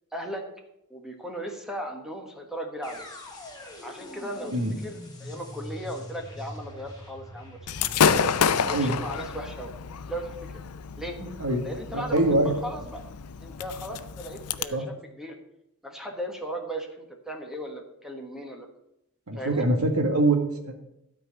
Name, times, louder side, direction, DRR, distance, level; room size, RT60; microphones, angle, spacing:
voice 1, 0.1-0.4 0.9-3.1 3.8-4.5 4.8-7.6 7.9-8.3 8.7-9.7 10.1-10.6 11.0-11.2 11.6-13.0 13.4-15.4 15.8-18.7 19.4-19.7, right 1 dB, ahead, 2 dB, 1.3 m, -37 dB
sound 1, 2.8-10.8, left 1 dB, 20° left, 2.7 m, -44 dB
Gunshot gunfire / Fireworks, 7.7-14.6, left 7 dB, 90° left, 0.6 m, -29 dB
voice 2, 11.2-11.6 11.9-12.6 14.7-14.8 19.3-20.8, right 2 dB, 75° right, 4 dB, 1.8 m, -24 dB
12.5 x 4.7 x 8.0 m, 0.83 s
head